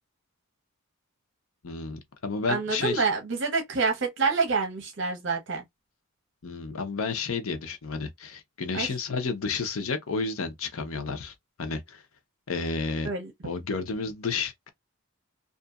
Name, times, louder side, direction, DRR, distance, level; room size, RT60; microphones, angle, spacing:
voice 1, 1.6-3.1 6.4-12.0 12.5-13.1 13.4-14.7, left 4 dB, 75° left, 0.7 m, -31 dB
voice 2, 2.5-5.6 8.7-8.9 13.0-13.3, right 4 dB, 55° right, 0.7 m, -27 dB
2.6 x 2.5 x 2.3 m
head